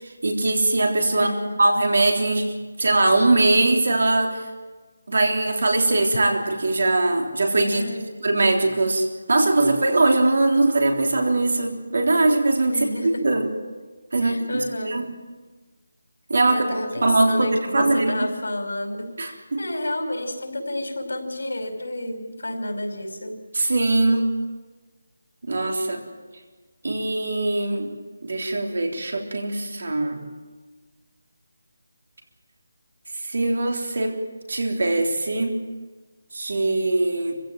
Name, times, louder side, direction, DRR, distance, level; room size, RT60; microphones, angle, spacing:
voice 1, 0.2-4.5 5.1-7.8 8.2-12.8 13.2-13.5 14.1-14.5 14.8-15.1 16.3-16.6 17.0-18.3 19.2-19.6 23.5-24.4 25.4-26.0 26.8-27.9 28.2-30.2 33.2-34.2 34.5-35.6 36.3-37.4, right 2 dB, 50° right, 2 dB, 3.6 m, -21 dB
voice 2, 1.1-1.6 7.7-8.2 12.7-13.1 14.2-15.0 16.5-19.0 19.2-23.4, left 1 dB, 85° left, 4 dB, 5.5 m, -30 dB
25.0 x 16.0 x 9.2 m, 1.3 s
figure-of-eight pair, 180°, 0 cm